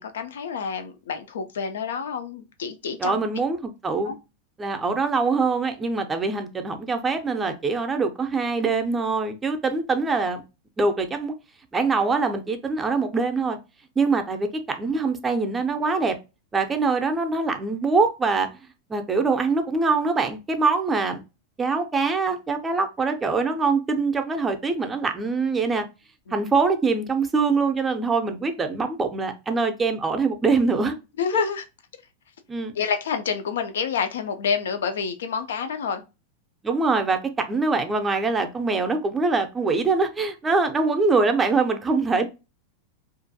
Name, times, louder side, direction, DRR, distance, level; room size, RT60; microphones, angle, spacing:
voice 1, 0.0-3.2 4.1-4.2 26.3-26.4 31.2-31.6 32.7-36.0, left 6 dB, 80° left, 0.4 m, -28 dB
voice 2, 3.0-4.2 4.6-10.4 10.8-11.3 11.7-13.6 14.0-16.2 16.5-18.5 18.9-21.2 21.6-25.8 26.3-30.9 31.3-31.4 32.5-32.7 36.6-42.3, right 4 dB, 20° right, 0.5 m, -23 dB
2.5 x 2.2 x 2.6 m
hypercardioid pair, 100°, 0 cm